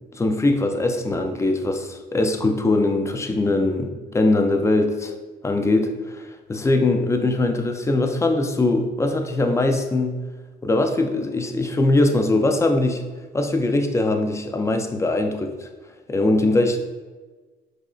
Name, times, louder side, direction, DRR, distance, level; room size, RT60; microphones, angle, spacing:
voice 1, 0.1-5.1 5.4-10.2 10.6-13.0 13.3-15.7 16.1-16.8, left 2 dB, 15° left, 5 dB, 0.4 m, -21 dB
4.6 x 3.0 x 2.4 m, 1.3 s
cardioid pair, 90°, 20 cm